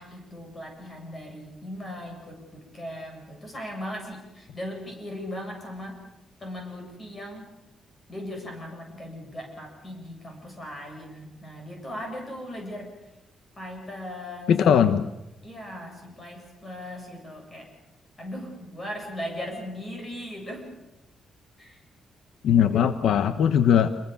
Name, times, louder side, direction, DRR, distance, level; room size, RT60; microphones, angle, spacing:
voice 1, 0.0-6.0 6.4-7.5 8.1-13.0 13.5-14.6 15.4-17.7 18.2-20.7 21.6-21.8, left 1 dB, 20° left, 2 dB, 7.9 m, -38 dB
voice 2, 14.5-15.1 22.4-23.9, left 8 dB, 70° left, 11 dB, 1.0 m, -20 dB
27.5 x 23.0 x 7.1 m, 0.96 s
cardioid pair, 160°, 0 cm